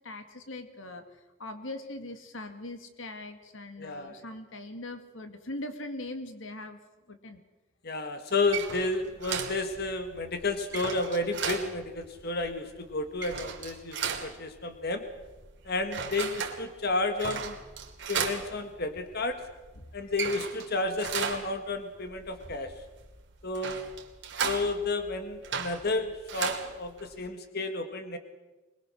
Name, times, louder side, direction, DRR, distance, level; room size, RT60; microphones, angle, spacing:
voice 1, 0.0-6.8 7.1-7.4 19.8-20.1, left 2 dB, 85° left, 7 dB, 2.1 m, -41 dB
voice 2, 3.8-4.2 7.8-15.0 15.6-17.6 18.1-19.4 19.9-22.7 23.4-23.8 24.4-28.2, left 2 dB, 55° left, 7 dB, 1.9 m, -31 dB
sound 1, 8.3-27.2, right 6 dB, 65° right, 2.6 m, -37 dB
24.5 x 21.0 x 6.5 m, 1.1 s
head